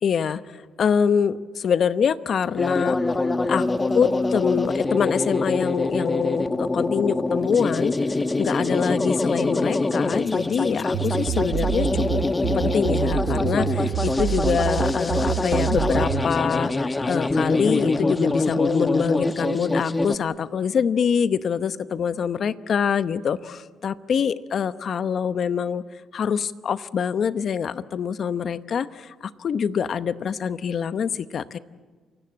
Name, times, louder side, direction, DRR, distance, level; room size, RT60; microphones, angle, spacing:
voice 1, 0.0-3.0 3.5-3.6 3.9-8.0 8.4-12.0 12.5-25.8 26.1-31.6, left 7 dB, 55° left, 14 dB, 0.9 m, -25 dB
sound 1, 2.6-20.1, left 2 dB, 20° left, 1.1 m, -24 dB
sound 2, 10.9-16.3, right 12 dB, 80° right, 0.7 m, -27 dB
28.0 x 17.0 x 8.7 m, 1.5 s
cardioid pair, 90°, 0 cm